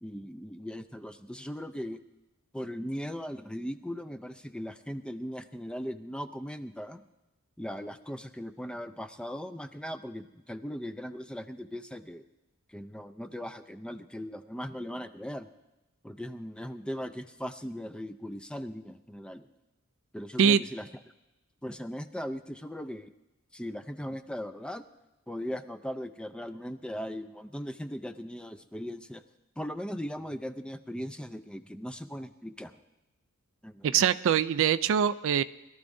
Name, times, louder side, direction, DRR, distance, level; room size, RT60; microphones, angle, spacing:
voice 1, 0.0-2.0 2.5-7.0 7.6-12.2 12.7-15.5 16.0-19.5 20.1-20.9 21.6-23.1 23.5-24.9 25.3-29.2 29.6-32.8 33.6-34.0, equal, 5° left, 9 dB, 0.4 m, -38 dB
voice 2, 33.8-35.4, right 8 dB, 65° right, 14 dB, 0.3 m, -23 dB
22.0 x 13.0 x 2.6 m, 1.0 s
head